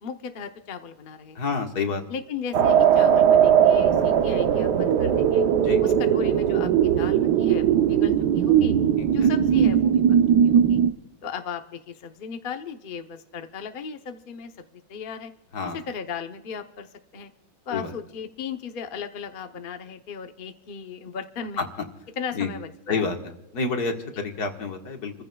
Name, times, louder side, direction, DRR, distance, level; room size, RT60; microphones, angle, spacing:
voice 1, 0.0-1.4 2.1-5.4 5.8-8.7 9.1-9.9 10.4-10.8 11.2-14.5 14.9-15.3 15.7-16.9 17.1-17.3 17.7-21.7 22.2-23.0, left 6 dB, 70° left, 6 dB, 0.5 m, -36 dB
voice 2, 1.4-2.0 5.6-5.8 9.0-9.3 15.5-15.8 17.7-17.9 21.6-21.7 22.3-22.5 22.9-23.2 23.5-25.2, left 4 dB, 55° left, 3 dB, 1.9 m, -28 dB
sound 1, 2.5-10.9, right 8 dB, 65° right, 1.2 m, -19 dB
30.0 x 15.0 x 2.3 m, 0.94 s
omnidirectional pair, 2.2 m